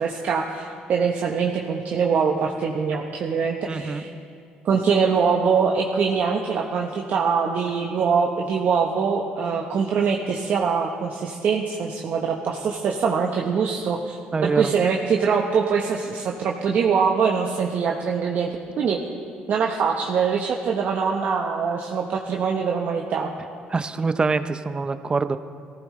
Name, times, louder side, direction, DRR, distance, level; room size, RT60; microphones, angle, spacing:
voice 1, 0.0-4.1 4.6-18.5 18.8-19.0 19.5-23.3, right 6 dB, 60° right, 0 dB, 1.0 m, -23 dB
voice 2, 3.7-4.0 14.3-14.7 23.7-25.4, right 4 dB, 30° right, 11 dB, 0.6 m, -24 dB
18.5 x 15.0 x 3.2 m, 2.3 s
supercardioid pair, 75°, 3 cm